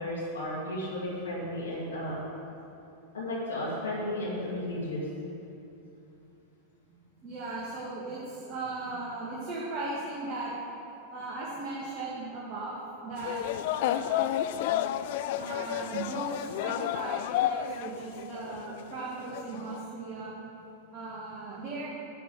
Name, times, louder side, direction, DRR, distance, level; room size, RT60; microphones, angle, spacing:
voice 1, 0.0-2.1 3.1-5.1, left 1 dB, 70° left, -8 dB, 2.2 m, -33 dB
voice 2, 7.2-10.5 11.1-12.8 13.0-14.3 15.4-20.3 20.9-21.9, right 3 dB, 40° right, -7 dB, 2.0 m, -37 dB
sound 1, 13.2-17.9 18.2-18.9 19.3-19.8, left 12 dB, 50° left, 0.3 m, -31 dB
10.5 x 4.6 x 8.1 m, 2.8 s
figure-of-eight pair, 90°, 0 cm